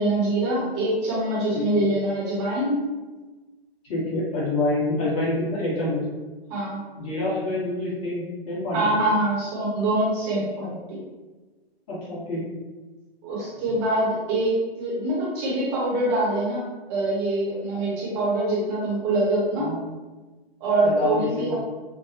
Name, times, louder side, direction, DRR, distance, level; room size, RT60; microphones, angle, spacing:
voice 1, 0.0-2.9 6.5-6.8 8.7-11.0 13.2-19.7 20.6-21.5, right 1 dB, 25° right, -7 dB, 1.0 m, -24 dB
voice 2, 3.9-6.0 7.0-8.8 10.6-10.7 11.9-12.5 19.6-19.8 20.8-21.5, left 2 dB, 35° left, -7 dB, 1.3 m, -27 dB
3.4 x 2.2 x 2.5 m, 1.2 s
figure-of-eight pair, 120°, 31 cm